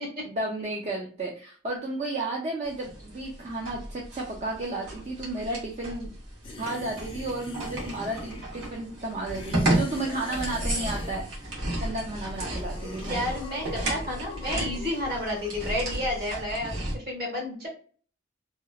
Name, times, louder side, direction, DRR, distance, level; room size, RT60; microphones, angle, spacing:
voice 1, 0.2-6.1 6.6-11.3 11.8-13.2, right 2 dB, 40° right, -1 dB, 0.4 m, -33 dB
sound 1, 2.6-16.9, right 1 dB, 85° right, 0.9 m, -33 dB
sound 2, 6.4-8.7 9.2-11.5 12.1-16.8, left 2 dB, 30° left, 0.5 m, -45 dB
voice 2, 13.0-17.7, left 1 dB, 55° right, -2 dB, 1.3 m, -31 dB
2.8 x 2.1 x 2.3 m, 0.43 s
head